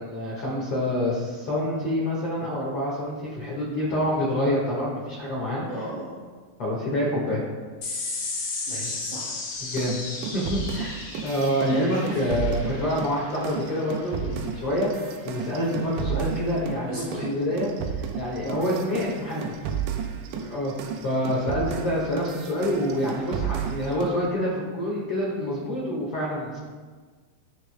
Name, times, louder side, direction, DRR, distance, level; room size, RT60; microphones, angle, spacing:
voice 1, 0.0-5.6 6.6-7.4 9.6-10.0 10.3-19.5 20.5-20.7 21.0-26.6, left 1 dB, 75° left, -5 dB, 1.3 m, -27 dB
voice 2, 5.7-6.2 8.7-9.3 9.7-9.8 12.0-12.1 16.9-17.3 20.4-20.6, right 1 dB, 45° right, -7 dB, 3.6 m, -37 dB
sound 1, 7.8-14.6, left 3 dB, 55° left, 2.1 m, -35 dB
sound 2, 9.8-16.8 17.1-24.2, right 8 dB, 80° right, 2.8 m, -33 dB
19.0 x 6.7 x 2.2 m, 1.5 s
omnidirectional pair, 5.5 m